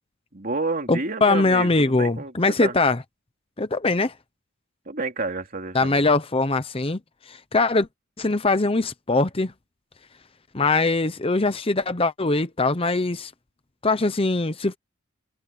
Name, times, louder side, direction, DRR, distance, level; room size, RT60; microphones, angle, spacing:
voice 1, 0.3-2.3 2.6-2.7 4.9-6.1, right 3 dB, 40° right, 3.0 m, -29 dB
voice 2, 0.9-3.0 3.6-4.1 5.7-7.0 7.3-7.9 8.2-9.5 10.5-13.3 13.8-14.8, left 3 dB, 25° left, 0.8 m, -22 dB
head